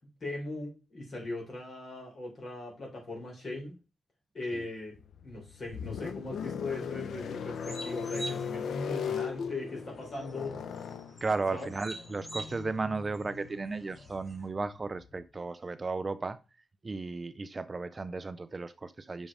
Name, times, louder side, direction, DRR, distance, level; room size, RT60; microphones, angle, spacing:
voice 1, 0.2-3.7 4.3-4.9 5.2-10.6 11.5-11.7, left 2 dB, 40° left, 3.8 m, -39 dB
sound 1, 5.0-15.2, left 7 dB, 90° left, 0.5 m, -39 dB
sound 2, 7.1-14.5, right 1 dB, 15° left, 1.6 m, -47 dB
voice 2, 11.2-16.4 16.8-19.3, right 3 dB, 25° right, 0.4 m, -35 dB
6.0 x 5.3 x 4.8 m
wide cardioid pair, 160°, 0 cm